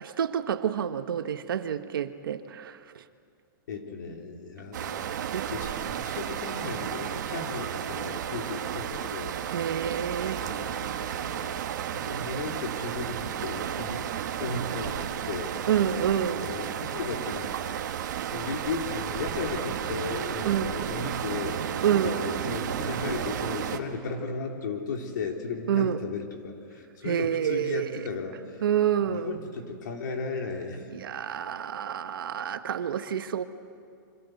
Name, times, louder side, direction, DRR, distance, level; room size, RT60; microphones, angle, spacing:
voice 1, 0.0-3.0 5.3-5.5 9.5-10.4 15.7-16.4 20.4-20.8 21.8-22.2 25.7-26.0 27.0-28.1 28.6-29.4 30.9-33.4, right 9 dB, 85° right, 8 dB, 1.5 m, -28 dB
voice 2, 3.7-5.1 5.5-9.4 10.4-11.6 11.9-15.5 16.4-17.6 18.3-21.6 22.0-28.4 29.1-30.9, left 4 dB, 60° left, 2 dB, 3.9 m, -35 dB
sound 1, 4.7-23.8, right 9 dB, 55° right, 1.7 m, -33 dB
29.5 x 25.5 x 8.0 m, 2.3 s
supercardioid pair, 180°, 11 cm